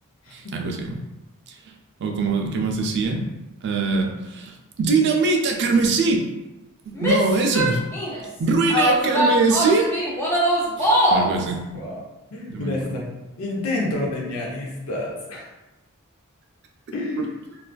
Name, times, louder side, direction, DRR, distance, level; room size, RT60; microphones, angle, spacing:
voice 1, 0.3-1.0 1.5-1.6 2.0-3.2 3.6-6.3 6.9-7.8 8.4-9.9 10.8-11.6 12.5-12.9, right 4 dB, 50° right, 2 dB, 0.3 m, -22 dB
Female speech woman speaking / Yell, 7.0-8.2 8.7-11.3, equal, 10° left, 0.4 m, -21 dB
voice 2, 12.3-13.1 13.4-15.5 16.9-17.3, left 2 dB, 70° left, -2 dB, 0.6 m, -29 dB
2.4 x 2.3 x 2.2 m, 1.0 s
head